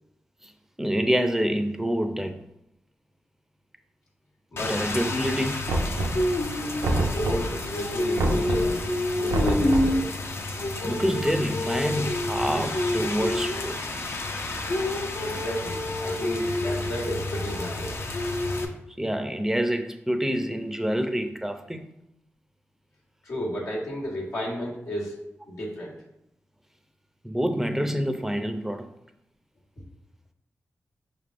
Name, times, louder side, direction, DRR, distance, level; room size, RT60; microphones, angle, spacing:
voice 1, 0.8-2.4 4.7-5.7 10.8-13.8 19.0-21.8 27.2-28.8, equal, 5° right, 0.4 m, -27 dB
Rain, 4.6-18.7, left 1 dB, 55° left, 0.5 m, -28 dB
Knock, 5.7-6.4 6.8-7.6 8.2-8.8 9.3-10.0, right 2 dB, 90° right, 0.5 m, -26 dB
voice 2, 6.4-8.8 9.2-10.1 15.2-18.0 23.2-25.2 25.5-25.9, equal, 85° left, 1.3 m, -33 dB
5.1 x 3.4 x 2.5 m
cardioid pair, 55°, 5 cm